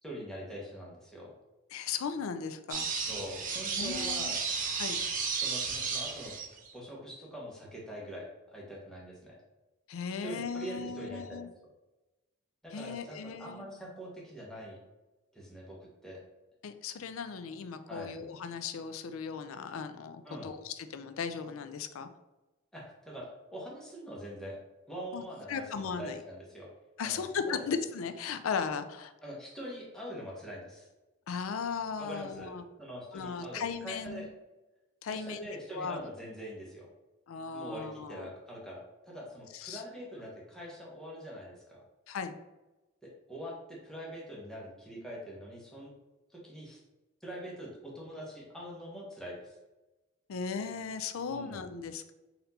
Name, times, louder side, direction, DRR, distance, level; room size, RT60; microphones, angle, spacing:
voice 1, 0.0-1.3 2.9-4.4 5.4-6.3 6.7-9.4 10.2-11.5 12.6-14.8 15.3-16.2 17.9-18.1 20.2-20.5 22.7-24.6 24.9-26.7 27.0-27.2 29.2-30.9 32.0-34.3 35.1-36.9 37.5-41.8 43.0-45.9 46.3-46.8 47.2-49.5 51.3-51.6, equal, 5° left, -4 dB, 1.0 m, -44 dB
voice 2, 1.7-2.9 3.8-4.3 4.8-5.0 9.9-11.5 12.7-13.6 16.6-22.1 25.1-26.2 27.0-29.1 31.3-32.6 33.1-34.3 35.0-35.5 35.7-36.0 37.3-38.3 39.5-39.8 42.1-42.4 50.3-52.1, left 6 dB, 85° left, 10 dB, 0.4 m, -37 dB
sound 1, 2.7-6.7, right 5 dB, 40° right, 0.6 m, -33 dB
4.2 x 2.7 x 4.1 m, 1.1 s
head